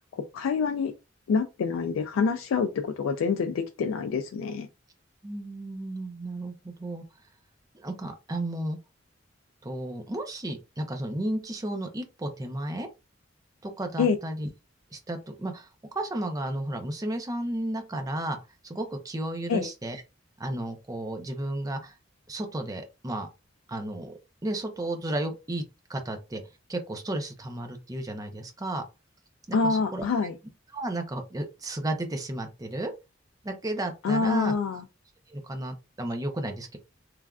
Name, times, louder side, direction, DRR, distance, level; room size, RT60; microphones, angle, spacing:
voice 1, 0.1-0.9 1.3-4.7 14.0-14.2 19.5-19.7 29.5-30.4 34.0-34.9, left 5 dB, 85° left, 0.3 m, -26 dB
voice 2, 5.2-7.0 7.7-8.8 9.6-12.9 13.6-14.5 14.9-15.7 15.9-18.4 18.6-20.0 20.4-21.9 22.3-23.3 23.7-24.1 24.4-25.6 25.9-26.4 26.7-28.8 29.5-30.0 30.7-32.9 33.4-34.5 35.3-36.8, right 1 dB, 20° right, 0.5 m, -33 dB
3.2 x 2.3 x 2.3 m
head